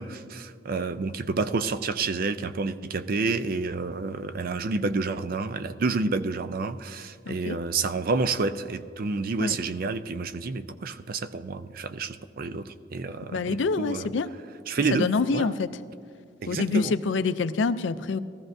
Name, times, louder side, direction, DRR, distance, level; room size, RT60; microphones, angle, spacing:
voice 1, 0.0-14.0 14.7-15.5 16.4-16.9, right 4 dB, 50° right, 12 dB, 0.4 m, -29 dB
voice 2, 7.3-7.6 9.4-9.6 13.3-14.3 14.9-15.8 16.5-18.2, left 4 dB, 80° left, 13 dB, 0.4 m, -26 dB
18.5 x 14.0 x 2.6 m, 2.3 s
head